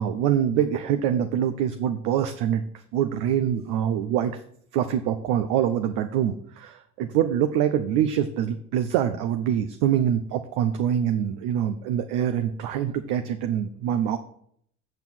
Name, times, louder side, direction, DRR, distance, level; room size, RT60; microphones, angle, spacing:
voice 1, 0.0-2.6 2.9-4.4 4.7-14.2, right 9 dB, 70° right, 8 dB, 0.9 m, -25 dB
8.1 x 7.0 x 6.1 m, 0.65 s
hypercardioid pair, 65°, 44 cm